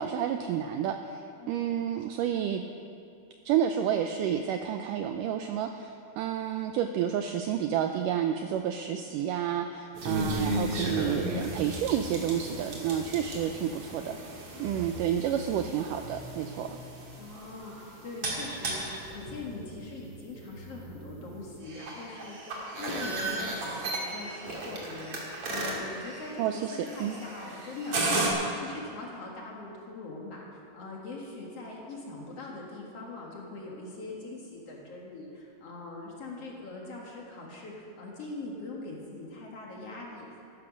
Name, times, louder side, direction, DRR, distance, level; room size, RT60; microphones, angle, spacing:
voice 1, 0.0-2.6 3.5-16.7 26.4-27.2, right 9 dB, 85° right, 6 dB, 1.9 m, -30 dB
voice 2, 1.4-1.8 14.5-14.9 17.2-40.4, left 3 dB, 50° left, -2 dB, 2.2 m, -42 dB
sound 1, 9.9-28.3, right 2 dB, 45° right, 2.7 m, -35 dB
14.5 x 12.5 x 6.1 m, 2.5 s
omnidirectional pair, 4.4 m